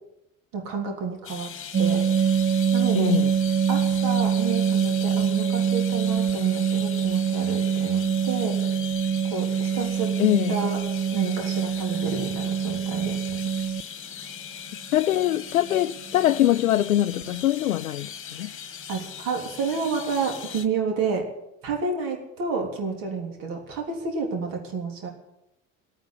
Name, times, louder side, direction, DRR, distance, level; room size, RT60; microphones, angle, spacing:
voice 1, 0.5-1.5 1.8-2.0 2.7-3.2 3.7-8.6 9.3-10.1 10.5-10.8 11.1-13.5 18.9-21.2 21.6-25.1, right 5 dB, 55° right, 3.5 m, -29 dB
sound 1, 1.2-20.7, left 8 dB, 30° left, 1.6 m, -39 dB
sound 2, 1.7-13.8 15.7-15.9 16.2-16.3 16.7-16.8 17.1-17.4, right 7 dB, 20° right, 0.5 m, -25 dB
voice 2, 3.0-3.3 10.2-10.6 14.9-18.5, left 13 dB, 80° left, 0.5 m, -23 dB
16.0 x 9.2 x 9.7 m
figure-of-eight pair, 60°, 41 cm